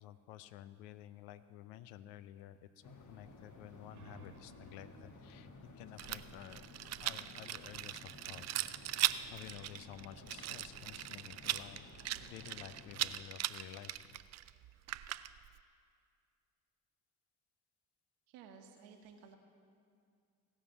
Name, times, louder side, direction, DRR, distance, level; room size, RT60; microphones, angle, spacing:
voice 1, 0.0-5.5 5.8-6.7 7.0-8.5 9.0-11.9 12.3-14.2, left 12 dB, 70° left, 14 dB, 0.6 m, -52 dB
sound 1, 2.8-13.2, left 3 dB, 45° left, 1.4 m, -56 dB
sound 2, 3.9-7.1, right 4 dB, 90° right, 0.6 m, -61 dB
Rattle, 6.0-15.6, right 14 dB, 40° right, 0.4 m, -39 dB
voice 2, 18.3-19.4, right 6 dB, 70° right, 4 dB, 1.2 m, -55 dB
16.5 x 5.7 x 7.1 m, 2.3 s
figure-of-eight pair, 45°, 42 cm